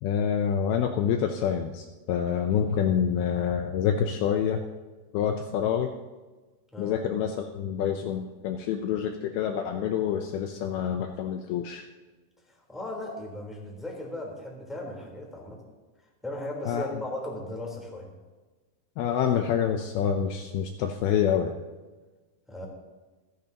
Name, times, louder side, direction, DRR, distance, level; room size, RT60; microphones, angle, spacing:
voice 1, 0.0-4.6 5.1-5.9 6.8-11.8 16.7-16.9 19.0-21.6, left 8 dB, 90° left, 4 dB, 2.1 m, -27 dB
voice 2, 12.7-15.6 16.2-18.1 22.5-22.7, left 1 dB, ahead, -2 dB, 2.7 m, -37 dB
27.0 x 10.5 x 2.9 m, 1.3 s
omnidirectional pair, 5.4 m